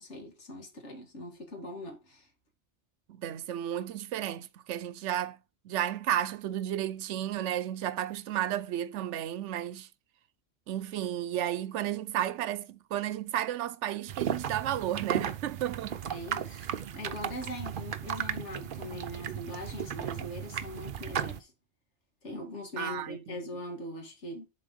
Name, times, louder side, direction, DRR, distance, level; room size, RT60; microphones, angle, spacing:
voice 1, 0.0-2.3 16.1-21.5 22.2-24.5, left 1 dB, 80° left, 2.1 m, -41 dB
voice 2, 3.1-5.4 5.6-9.9 10.7-16.0 16.5-16.6 22.8-23.4, right 11 dB, 90° right, 0.9 m, -33 dB
sound 1, 14.1-21.4, right 9 dB, 55° right, 0.7 m, -35 dB
7.2 x 4.0 x 5.2 m
omnidirectional pair, 1.2 m